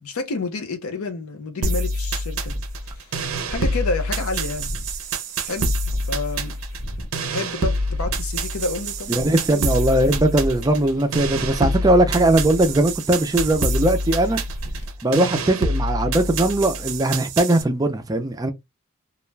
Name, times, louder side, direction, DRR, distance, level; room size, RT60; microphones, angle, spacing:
voice 1, 0.0-2.6 3.5-4.7 5.4-5.7 6.1-6.5 7.3-9.7, left 3 dB, 80° left, 0.6 m, -29 dB
sound 1, 1.6-17.6, right 1 dB, 75° right, 0.5 m, -27 dB
sound 2, 2.5-14.9, equal, 50° left, 0.8 m, -36 dB
voice 2, 9.1-14.4 15.0-18.5, right 1 dB, 15° right, 0.3 m, -19 dB
2.3 x 2.1 x 3.1 m
head